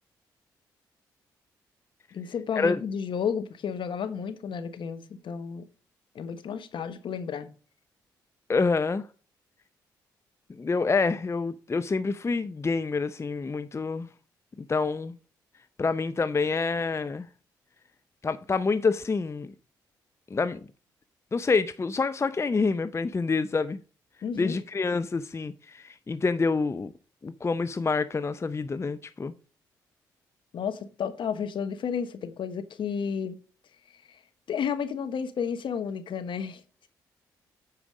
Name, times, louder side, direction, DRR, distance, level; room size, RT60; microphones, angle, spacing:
voice 1, 2.1-5.7 6.1-7.5 24.2-24.6 30.5-33.4 34.1-34.2 34.5-36.6, left 7 dB, 60° left, 1.1 m, -32 dB
voice 2, 8.5-9.1 10.5-14.1 14.6-15.1 15.8-17.3 18.2-19.5 20.3-20.7 21.3-23.8 24.3-26.9 27.2-29.3, left 4 dB, 30° left, 0.6 m, -27 dB
8.6 x 4.9 x 4.9 m
hypercardioid pair, 45°, 9 cm